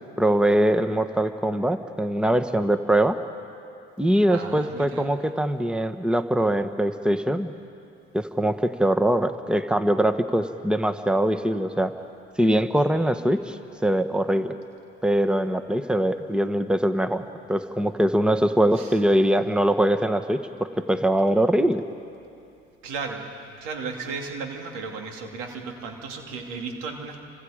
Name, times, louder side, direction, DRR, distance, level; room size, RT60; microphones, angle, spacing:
voice 1, 0.2-3.2 4.0-7.5 8.1-11.9 12.4-14.5 15.0-21.8, right 1 dB, 5° right, 8 dB, 1.4 m, -22 dB
voice 2, 4.3-5.1 18.8-19.0 22.8-23.3 23.6-27.2, right 4 dB, 85° right, 3 dB, 2.7 m, -35 dB
30.0 x 25.5 x 5.1 m, 2.6 s
hypercardioid pair, 55°, 31 cm